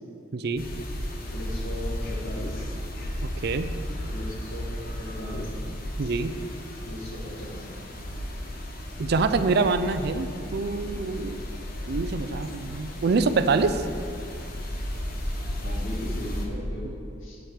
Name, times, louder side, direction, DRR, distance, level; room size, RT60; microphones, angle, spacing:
voice 1, 0.3-0.6 3.2-3.7 6.0-6.3 9.0-11.4 11.9-13.8 16.8-16.9, right 4 dB, 55° right, 10 dB, 0.4 m, -25 dB
sound 1, 0.6-16.5, equal, 50° left, 1.1 m, -34 dB
voice 2, 1.2-2.8 4.0-5.5 6.0-6.1 6.8-7.7 15.6-17.4, left 1 dB, 85° left, -2 dB, 1.9 m, -37 dB
8.3 x 7.7 x 4.9 m, 2.6 s
head